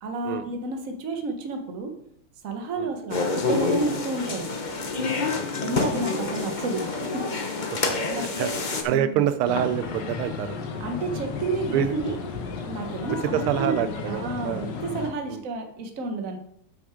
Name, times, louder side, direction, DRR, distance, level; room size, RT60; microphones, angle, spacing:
voice 1, 0.0-1.9 2.4-4.5 5.6-7.2 7.7-7.8 8.1-8.5 8.9-9.2 10.8-12.2 12.7-13.7 14.1-16.4, right 3 dB, 45° right, 4 dB, 1.4 m, -31 dB
sound 1, 3.1-8.8, left 3 dB, 55° left, 0.5 m, -27 dB
voice 2, 8.1-10.6 11.7-11.9 13.3-14.7 15.3-15.4, right 11 dB, 85° right, 11 dB, 1.4 m, -27 dB
sound 2, 9.4-15.1, left 5 dB, 90° left, 2.0 m, -33 dB
8.6 x 5.9 x 5.0 m, 0.72 s
omnidirectional pair, 2.4 m